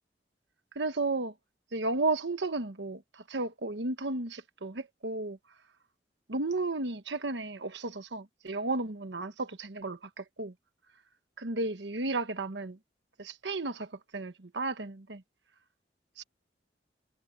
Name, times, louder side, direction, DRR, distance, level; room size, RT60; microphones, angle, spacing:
voice 1, 0.7-1.3 1.7-5.4 6.3-10.5 11.4-12.8 13.2-15.2 16.2-16.3, right 2 dB, 85° right, 1.3 m, -33 dB
head